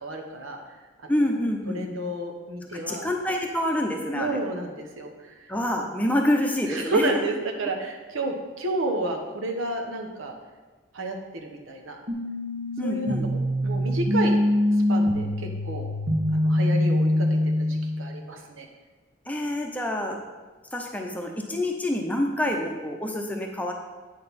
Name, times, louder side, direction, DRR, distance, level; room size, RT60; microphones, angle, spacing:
voice 1, 0.0-0.6 1.7-3.0 4.1-5.4 6.7-10.3 10.9-11.2 11.4-12.0 12.8-14.4 14.9-15.9 16.3-17.3 17.6-18.7, right 2 dB, 90° right, 2 dB, 1.1 m, -31 dB
voice 2, 1.1-1.8 2.7-4.4 5.5-7.1 12.8-13.3 19.3-20.2 20.7-23.7, left 1 dB, 10° left, 2 dB, 0.7 m, -27 dB
sound 1, 12.1-18.0, left 1 dB, 65° right, 1.8 m, -24 dB
8.6 x 6.6 x 4.2 m, 1.3 s
head